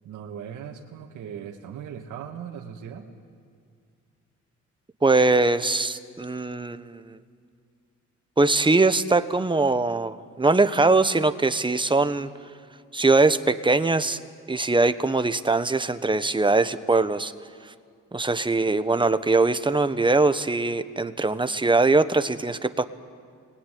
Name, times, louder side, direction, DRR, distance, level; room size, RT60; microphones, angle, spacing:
voice 1, 0.0-3.1, right 8 dB, 80° right, 0 dB, 2.3 m, -38 dB
voice 2, 5.0-7.2 8.4-12.3 12.9-14.2 14.5-17.3 18.1-22.8, right 3 dB, 15° right, 11 dB, 1.3 m, -22 dB
29.5 x 21.0 x 9.6 m, 2.2 s
cardioid pair, 90°, 30 cm